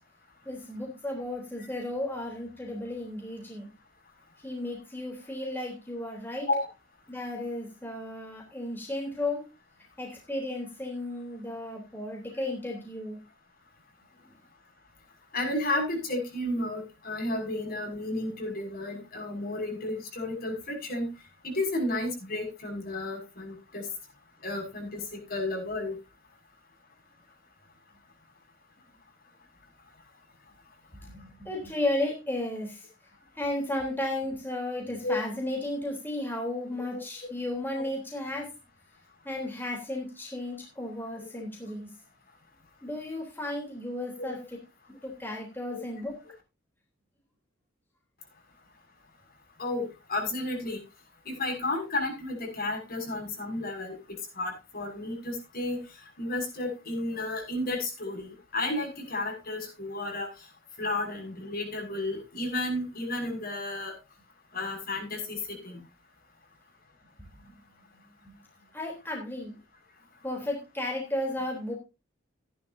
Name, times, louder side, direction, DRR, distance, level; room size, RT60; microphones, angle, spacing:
voice 1, 0.5-3.7 4.4-6.5 7.1-9.4 10.0-13.2 31.0-32.9 33.4-38.5 39.2-41.9 42.8-44.4 45.0-46.1 67.4-67.5 68.2-68.3 68.7-69.6 70.2-71.7, left 1 dB, 10° left, -1 dB, 3.5 m, -34 dB
voice 2, 15.3-21.1 21.4-23.9 24.4-26.0 35.0-35.1 36.7-37.0 44.2-44.4 45.7-45.8 49.6-50.8 51.2-53.9 54.3-55.8 56.2-60.3 60.8-63.9 64.5-65.8, left 2 dB, 50° left, 2 dB, 6.4 m, -32 dB
16.0 x 11.0 x 2.7 m, 0.27 s
head